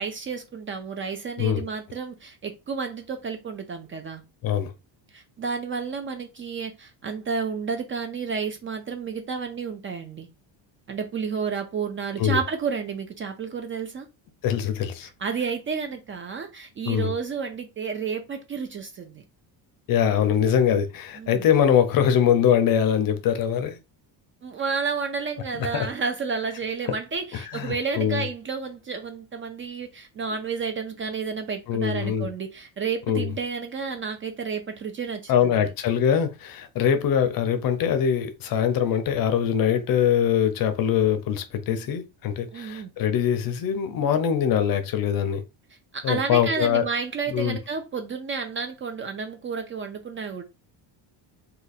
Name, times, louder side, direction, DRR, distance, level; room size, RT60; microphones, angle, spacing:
voice 1, 0.0-4.2 5.1-10.3 10.9-14.1 15.0-19.2 21.2-21.4 24.4-35.7 42.5-42.9 45.9-50.4, right 5 dB, 30° right, 0.4 m, -31 dB
voice 2, 14.4-15.1 16.9-17.1 19.9-23.8 25.6-25.9 27.3-28.2 31.7-32.3 33.1-33.3 35.3-45.4 46.0-46.9 47.3-47.6, left 9 dB, 50° left, 0.6 m, -23 dB
2.8 x 2.5 x 4.0 m
cardioid pair, 155°, 46 cm